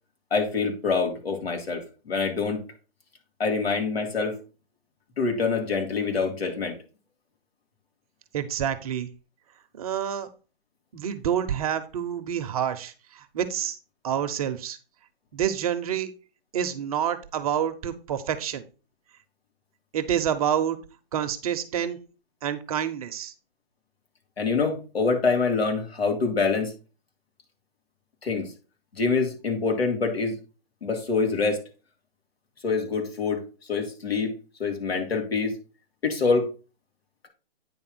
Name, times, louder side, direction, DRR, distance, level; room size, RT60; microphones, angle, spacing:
voice 1, 0.3-2.6 3.4-4.4 5.2-6.8 24.4-26.7 28.2-28.5 29.0-30.4 30.8-31.6 32.6-33.4 33.7-34.3 34.6-35.6 36.0-36.5, left 4 dB, 80° left, 2 dB, 3.3 m, -25 dB
voice 2, 8.3-9.1 9.7-10.3 10.9-13.8 14.0-14.8 15.3-16.1 16.5-18.6 19.9-20.8 21.1-22.0 22.4-23.3, right 9 dB, 40° right, 9 dB, 0.9 m, -28 dB
9.4 x 3.6 x 6.1 m, 0.34 s
hypercardioid pair, 150°, 30 cm